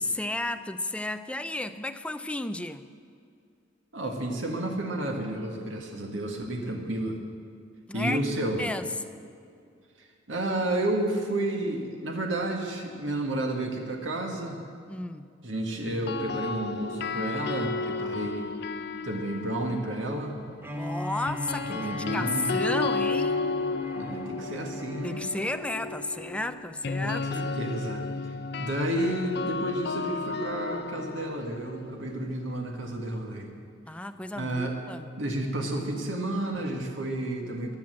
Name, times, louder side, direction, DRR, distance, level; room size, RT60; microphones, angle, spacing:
voice 1, 0.0-2.9 7.9-8.2 8.6-8.9 14.9-15.3 20.7-23.3 25.0-27.3 33.9-35.1, left 2 dB, 5° left, 10 dB, 0.5 m, -33 dB
voice 2, 3.9-7.2 7.9-8.6 10.0-14.6 15.4-18.5 19.0-20.4 21.7-22.5 24.0-25.2 27.0-28.0 28.6-33.5 34.4-34.7 35.1-37.7, right 1 dB, 85° right, 2 dB, 1.8 m, -31 dB
sound 1, 15.9-20.0 21.3-33.1, left 4 dB, 60° left, 0.6 m, -33 dB
Bowed string instrument, 20.6-26.6, left 1 dB, 10° right, 1.0 m, -40 dB
14.5 x 10.5 x 7.6 m, 2.4 s
head